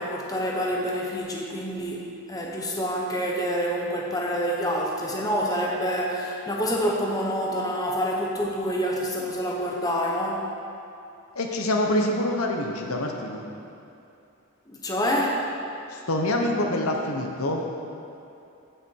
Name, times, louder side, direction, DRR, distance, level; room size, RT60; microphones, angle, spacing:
voice 1, 0.0-10.5 14.7-15.4, equal, 15° left, -2 dB, 1.1 m, -27 dB
voice 2, 11.3-13.4 15.9-17.6, left 1 dB, 85° left, 1 dB, 1.2 m, -26 dB
15.0 x 6.9 x 4.7 m, 2.7 s
head